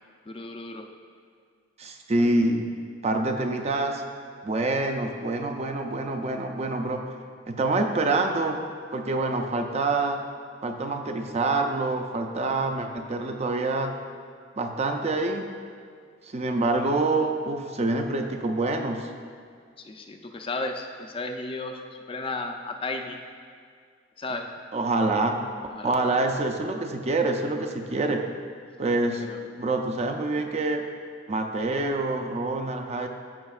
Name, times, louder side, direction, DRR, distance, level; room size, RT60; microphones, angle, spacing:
voice 1, 0.3-0.9 2.2-2.3 19.8-21.8 22.1-23.2 24.2-24.5 25.7-25.9 29.3-29.6, left 2 dB, 30° left, 4 dB, 0.4 m, -34 dB
voice 2, 1.8-2.7 3.0-4.0 4.4-7.1 7.5-8.6 8.9-10.2 10.6-13.9 14.6-15.5 16.2-19.1 24.7-25.4 25.8-28.2 28.8-29.2 29.6-30.8 31.3-33.1, right 2 dB, 35° right, 4 dB, 0.5 m, -26 dB
13.5 x 5.1 x 2.4 m, 2.1 s
head